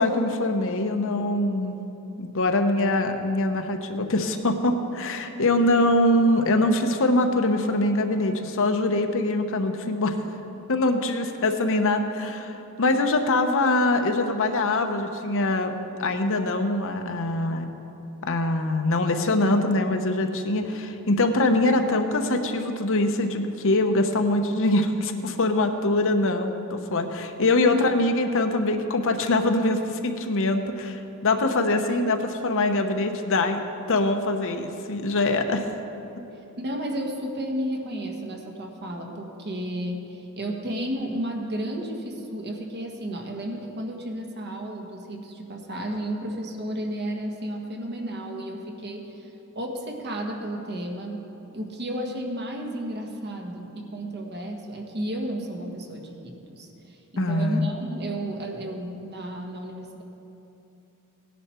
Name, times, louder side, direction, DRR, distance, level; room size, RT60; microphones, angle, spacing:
voice 1, 0.0-1.8 2.2-10.2 10.7-15.7 16.0-17.7 18.2-33.6 33.9-35.7 57.2-57.7, left 2 dB, 65° left, 6 dB, 0.9 m, -23 dB
voice 2, 36.3-51.3 51.5-60.0, right 1 dB, 50° right, 2 dB, 1.4 m, -33 dB
17.5 x 10.5 x 4.4 m, 3.0 s
head